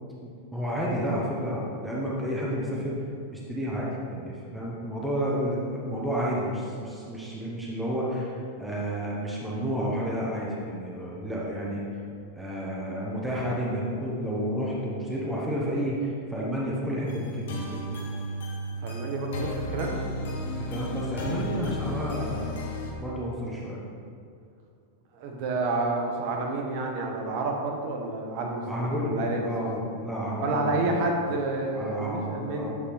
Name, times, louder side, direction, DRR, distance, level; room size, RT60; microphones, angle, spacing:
voice 1, 0.2-3.0 3.3-11.8 12.4-17.5 20.4-22.5 23.0-23.8 28.7-30.9 31.7-32.7, equal, ahead, -6 dB, 0.7 m, -31 dB
sound 1, 17.1-22.9, equal, 80° left, 1.2 m, -33 dB
voice 2, 18.8-20.0 25.1-29.7 30.4-32.7, right 2 dB, 40° right, 1 dB, 0.8 m, -29 dB
8.3 x 3.9 x 3.3 m, 2.4 s
supercardioid pair, 170°, 0 cm